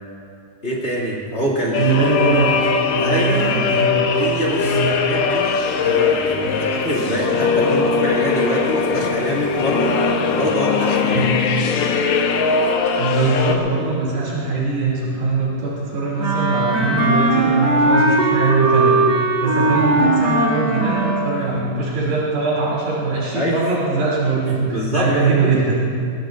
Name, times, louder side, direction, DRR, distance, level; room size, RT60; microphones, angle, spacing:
voice 1, 0.6-1.8 3.0-3.6 4.2-5.5 5.8-11.1 23.3-23.6 24.5-25.5, equal, 20° left, -5 dB, 2.4 m, -25 dB
voice 2, 1.4-2.5 2.9-4.1 4.6-5.0 11.1-11.4 13.0-19.0 19.4-25.8, right 3 dB, 85° right, -6 dB, 4.9 m, -21 dB
sound 1, 1.7-13.6, left 5 dB, 70° left, 2.5 m, -20 dB
Wind instrument woodwind instrument, 16.2-21.4, right 2 dB, 40° right, 1.8 m, -18 dB
22.5 x 20.5 x 2.6 m, 2.4 s
omnidirectional pair, 4.2 m